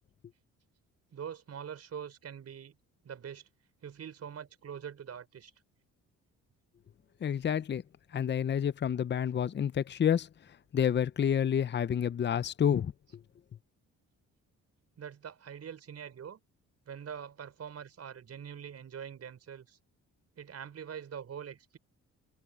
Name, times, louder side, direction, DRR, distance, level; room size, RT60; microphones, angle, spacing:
voice 1, 1.1-2.8 3.0-3.5 3.8-5.5 15.0-16.4 16.9-19.8 20.4-21.8, right 8 dB, 55° right, 5.7 m, -44 dB
voice 2, 7.2-7.8 8.1-10.3 10.7-12.9, left 8 dB, 35° left, 0.7 m, -29 dB
cardioid pair, 90°, 30 cm